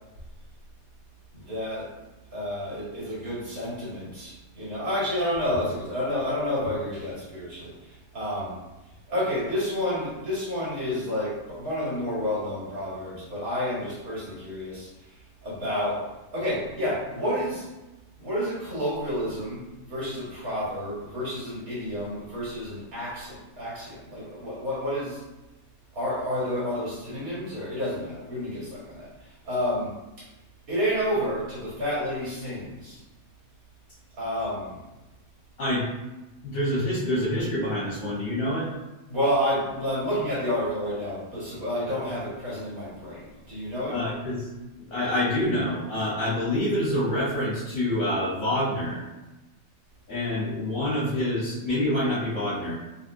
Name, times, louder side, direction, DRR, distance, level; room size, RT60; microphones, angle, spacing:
voice 1, 1.3-1.9 2.3-7.7 8.1-8.6 9.1-14.9 15.4-17.7 18.2-25.2 25.9-29.1 29.4-30.3 30.7-33.0 34.2-34.8 39.1-44.0, equal, 90° right, -8 dB, 2.1 m, -30 dB
voice 2, 36.4-38.7 43.9-44.5 44.9-49.0 50.1-52.8, left 1 dB, 70° left, -8 dB, 1.5 m, -26 dB
4.1 x 2.7 x 2.6 m, 1.0 s
omnidirectional pair, 1.5 m